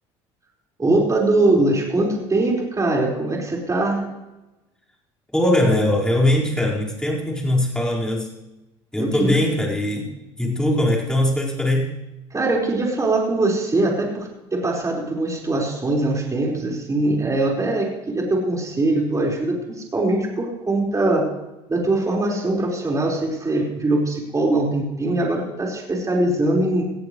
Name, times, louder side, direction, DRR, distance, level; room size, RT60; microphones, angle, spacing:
voice 1, 0.8-4.1 9.0-9.3 12.3-21.3 21.7-26.8, right 2 dB, 20° right, -2 dB, 5.0 m, -22 dB
voice 2, 5.3-8.3 8.9-10.1 10.4-12.0, left 1 dB, 5° left, -4 dB, 5.0 m, -21 dB
19.5 x 14.0 x 3.3 m, 0.99 s
hypercardioid pair, 75°, 15 cm